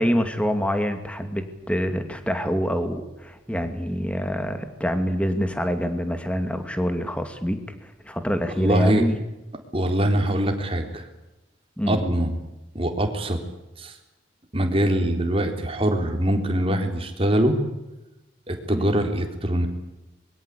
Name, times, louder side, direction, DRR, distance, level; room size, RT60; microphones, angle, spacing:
voice 1, 0.0-9.2 11.8-12.0 18.7-19.0, equal, 5° left, 8 dB, 2.4 m, -26 dB
voice 2, 8.6-9.0 9.7-11.1 11.9-12.4 12.7-13.4 13.8-13.9 14.5-17.6 18.5-19.7, right 1 dB, 30° right, 4 dB, 3.9 m, -23 dB
24.5 x 23.0 x 8.5 m, 0.97 s
head